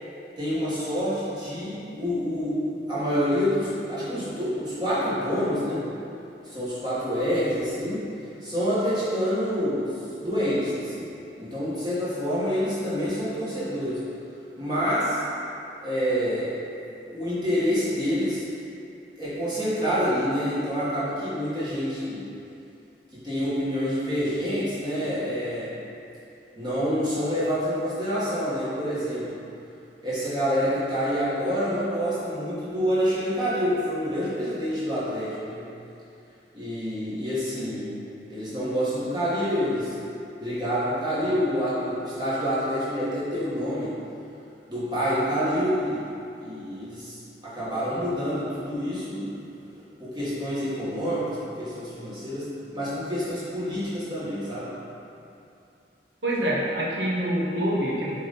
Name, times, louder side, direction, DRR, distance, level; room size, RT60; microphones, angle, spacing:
voice 1, 0.4-5.8 6.4-8.0 8.4-11.1 11.4-14.0 14.6-15.2 15.8-16.5 17.1-18.4 19.1-22.2 23.1-25.7 26.5-29.4 30.0-35.6 36.5-37.9 38.3-39.9 40.3-43.9 44.7-46.0 46.4-47.2 47.4-49.3 50.0-54.7, equal, 25° right, -11 dB, 1.4 m, -27 dB
voice 2, 56.2-58.2, right 1 dB, 80° right, -5 dB, 1.3 m, -26 dB
7.4 x 3.8 x 4.1 m, 2.7 s
head